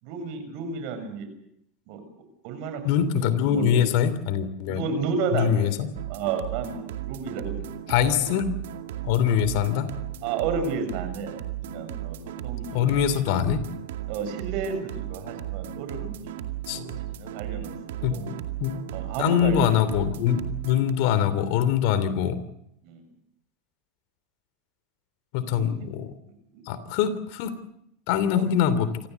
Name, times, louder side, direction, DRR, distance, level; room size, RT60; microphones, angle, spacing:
voice 1, 0.0-1.3 1.9-2.0 2.4-3.8 4.7-5.8 6.1-7.5 8.0-8.1 10.2-11.4 11.6-12.2 12.4-12.7 14.1-16.4 16.8-16.9 17.2-18.4 18.9-19.8 22.8-23.0 25.4-25.9 26.5-26.6 28.3-28.5, right 5 dB, 60° right, 8 dB, 7.0 m, -32 dB
voice 2, 2.8-4.8 5.3-5.9 7.9-8.5 9.0-9.9 12.7-13.6 16.7-17.0 18.0-18.7 19.2-22.4 25.3-26.1 26.7-27.5 28.1-28.9, left 9 dB, 65° left, 13 dB, 3.0 m, -23 dB
sound 1, 5.9-20.9, right 12 dB, 80° right, 2.1 m, -36 dB
27.5 x 15.0 x 8.3 m, 0.76 s
supercardioid pair, 110°, 0 cm